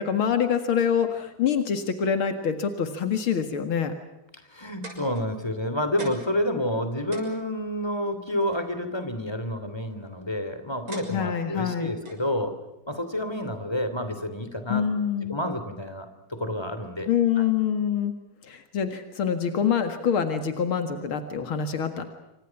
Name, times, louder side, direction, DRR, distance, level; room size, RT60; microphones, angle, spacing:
voice 1, 0.0-3.9 11.1-11.9 14.7-15.4 17.1-18.1 18.4-22.1, left 7 dB, 90° left, 8 dB, 2.7 m, -25 dB
voice 2, 4.5-12.5 12.9-14.9 15.3-17.1 17.4-17.5, left 1 dB, 10° left, 10 dB, 3.0 m, -29 dB
sound 1, 4.5-5.6 6.0-6.4 6.8-6.9 7.1-8.6 9.7-10.1 10.9-11.5 12.0-12.3 13.1-13.2, right 2 dB, 85° right, 7.4 m, -42 dB
28.0 x 25.5 x 6.0 m, 0.96 s
omnidirectional pair, 2.2 m